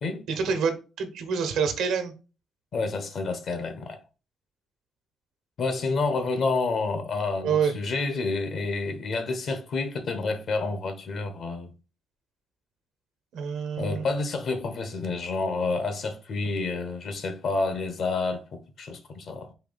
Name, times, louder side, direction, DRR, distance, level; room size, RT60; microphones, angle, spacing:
voice 1, 0.3-2.1 7.4-7.7 13.3-14.1, right 6 dB, 85° right, 1.1 m, -27 dB
voice 2, 2.7-4.0 5.6-11.7 13.8-19.5, left 3 dB, 60° left, 1.1 m, -29 dB
4.6 x 2.9 x 3.9 m
cardioid pair, 90°, 0 cm